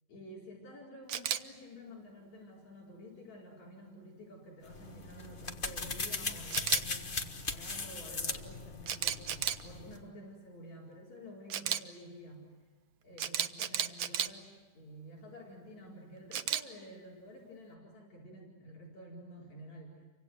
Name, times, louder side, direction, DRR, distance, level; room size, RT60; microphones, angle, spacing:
voice 1, 0.1-12.5 13.0-20.0, equal, 60° left, -3 dB, 5.9 m, -50 dB
Camera, 1.1-1.4 6.5-6.8 8.9-9.6 11.5-11.8 13.2-14.3 16.3-16.6, right 9 dB, 85° right, 1.0 m, -32 dB
sound 1, 4.7-10.0, left 4 dB, 85° left, 0.4 m, -38 dB
29.5 x 25.0 x 7.9 m, 1.3 s
omnidirectional pair, 3.6 m